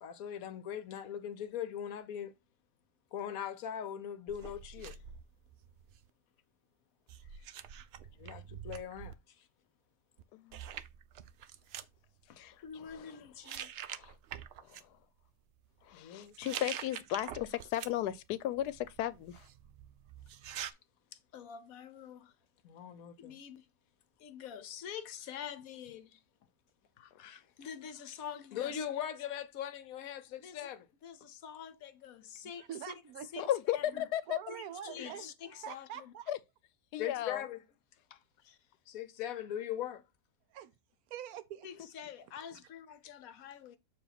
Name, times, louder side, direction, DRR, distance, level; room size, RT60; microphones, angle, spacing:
voice 1, 0.0-2.3 3.1-5.0 8.2-9.1 12.6-13.7 15.9-16.3 21.3-22.3 22.6-23.6 24.2-26.2 27.0-32.7 33.3-33.4 33.7-34.1 34.5-36.1 37.0-37.6 38.1-38.2 38.4-38.6 38.9-40.0 41.6-43.8, left 9 dB, 65° left, 1.1 m, -42 dB
sound 1, 4.3-6.1 7.1-9.1 10.2-10.3 10.5-11.9 12.7-13.0 13.4-14.8 16.2-18.2 18.5-20.7, right 9 dB, 90° right, 0.5 m, -46 dB
voice 2, 10.3-10.6 12.4-13.3 13.9-14.1 14.6-14.9 15.8-19.5 33.5-34.4 36.3-36.4 36.9-37.4, left 12 dB, 90° left, 1.1 m, -35 dB
voice 3, 32.6-33.5 34.3-36.3 40.5-40.7 41.1-41.7, right 10 dB, 75° right, 1.0 m, -45 dB
7.0 x 2.8 x 5.7 m
omnidirectional pair, 1.7 m